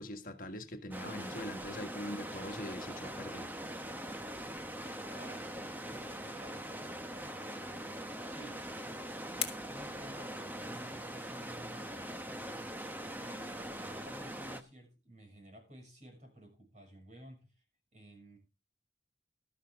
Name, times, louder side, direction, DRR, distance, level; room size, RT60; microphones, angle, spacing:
voice 1, 0.0-3.5, left 1 dB, 50° left, 1.6 m, -43 dB
sound 1, 0.9-14.6, right 1 dB, 10° right, 1.0 m, -42 dB
voice 2, 5.0-8.7 9.6-12.7 13.1-17.5 17.9-18.4, right 1 dB, 40° right, 6.3 m, -54 dB
sound 2, 8.3-11.0, left 9 dB, 30° left, 1.9 m, -45 dB
13.0 x 11.5 x 3.6 m
head